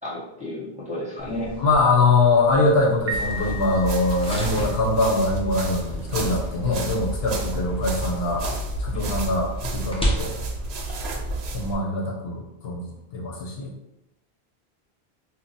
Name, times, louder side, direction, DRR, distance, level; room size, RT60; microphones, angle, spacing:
voice 1, 0.0-1.5 8.9-9.1, left 1 dB, 5° right, -9 dB, 0.9 m, -32 dB
sound 1, 1.2-11.7, equal, 10° left, 0.4 m, -35 dB
voice 2, 1.6-8.5 8.8-10.3 11.5-13.7, left 3 dB, 70° left, -2 dB, 1.0 m, -23 dB
Piano, 3.1-4.5, right 1 dB, 50° right, 0.8 m, -33 dB
sound 2, 3.1-11.8, right 2 dB, 85° right, 0.8 m, -31 dB
2.9 x 2.2 x 3.9 m, 0.89 s
omnidirectional pair, 1.1 m